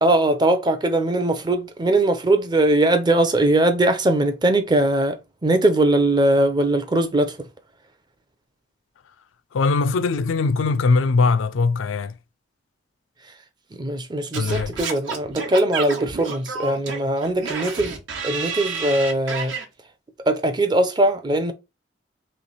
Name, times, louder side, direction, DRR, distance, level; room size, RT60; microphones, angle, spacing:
voice 1, 0.0-7.5 13.7-18.0 18.2-19.5 20.3-21.5, right 1 dB, 20° right, 0.5 m, -20 dB
voice 2, 9.5-12.2 14.3-14.7, left 4 dB, 85° left, 0.4 m, -21 dB
Singing / Scratching (performance technique), 14.3-19.6, right 5 dB, 80° right, 1.1 m, -30 dB
3.2 x 3.0 x 4.0 m
head